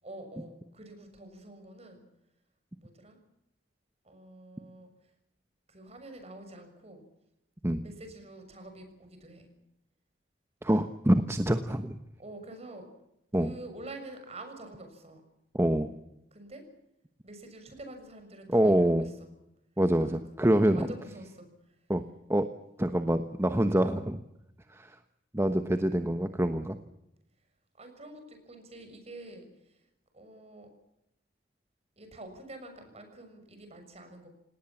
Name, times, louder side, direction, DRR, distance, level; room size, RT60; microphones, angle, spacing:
voice 1, 0.0-2.0 2.7-3.2 4.0-5.1 5.7-7.0 7.8-9.5 12.2-12.9 13.3-15.2 16.3-16.6 17.2-19.3 20.0-20.2 20.6-21.8 27.7-29.8 30.1-30.7 32.0-34.3, right 2 dB, 35° right, 6 dB, 6.6 m, -47 dB
voice 2, 10.6-12.0 13.3-13.5 15.5-15.9 18.5-19.1 19.8-20.9 21.9-22.0 22.3-22.5 22.8-24.2 24.7-25.0 25.3-26.8, right 1 dB, 15° right, 8 dB, 1.1 m, -25 dB
28.0 x 18.5 x 7.3 m, 0.84 s
head